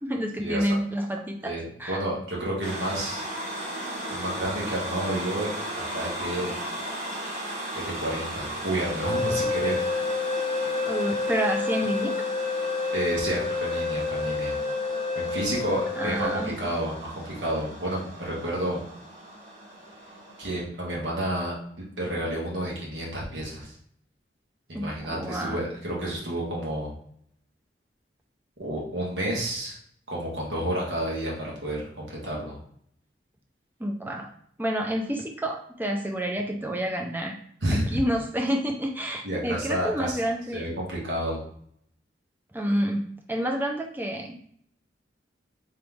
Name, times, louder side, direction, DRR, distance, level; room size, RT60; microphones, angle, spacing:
voice 1, 0.0-1.5 1.8-2.0 10.8-12.2 16.0-16.5 24.7-25.7 33.8-34.3 34.6-37.4 37.7-40.7 42.5-44.3, equal, 10° right, 2 dB, 0.5 m, -29 dB
voice 2, 1.4-3.2 4.1-5.5 5.9-6.5 7.7-10.0 12.9-14.6 15.1-18.8 20.4-21.5 22.0-23.7 24.7-26.9 28.6-29.8 30.1-32.6 37.6-38.0 39.2-40.2 40.5-41.4, right 1 dB, 70° right, -4 dB, 1.6 m, -30 dB
sound 1, 2.6-20.6, right 1 dB, 40° right, 1.1 m, -36 dB
sound 2, 8.9-16.5, left 4 dB, 30° left, 0.8 m, -29 dB
3.9 x 3.3 x 3.5 m, 0.64 s
head